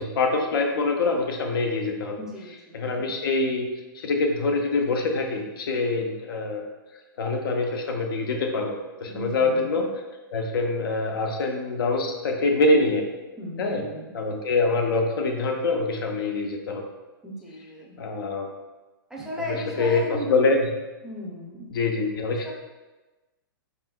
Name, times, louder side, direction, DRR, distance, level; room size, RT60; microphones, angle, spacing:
voice 1, 0.0-2.2 2.7-3.7 3.9-6.7 7.2-9.9 10.3-13.0 13.6-13.8 14.1-16.9 18.0-18.5 19.5-20.7 21.7-22.5, left 3 dB, 70° left, 3 dB, 0.7 m, -25 dB
voice 2, 2.2-3.1 9.1-9.7 13.4-14.1 17.2-18.0 19.1-20.4 21.0-21.7 22.4-22.5, equal, 5° right, -4 dB, 0.6 m, -36 dB
4.0 x 4.0 x 2.3 m, 1.2 s
hypercardioid pair, 140°, 12 cm